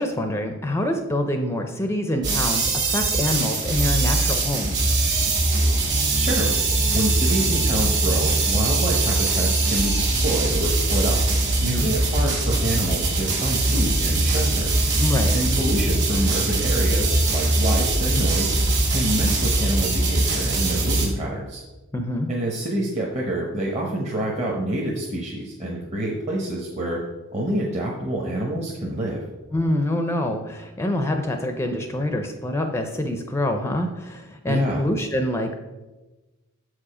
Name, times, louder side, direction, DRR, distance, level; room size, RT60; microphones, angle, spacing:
voice 1, 0.0-4.9 11.6-11.9 15.0-15.3 21.9-22.3 29.5-35.5, left 1 dB, 10° left, 5 dB, 0.4 m, -26 dB
sound 1, 2.2-21.1, right 2 dB, 50° right, 1.6 m, -21 dB
voice 2, 6.2-6.5 6.9-11.2 11.6-14.7 15.3-18.6 18.9-21.6 22.3-27.0 27.3-29.2 34.5-34.8, right 1 dB, 30° right, -3 dB, 0.9 m, -27 dB
7.2 x 4.9 x 4.9 m, 1.1 s
head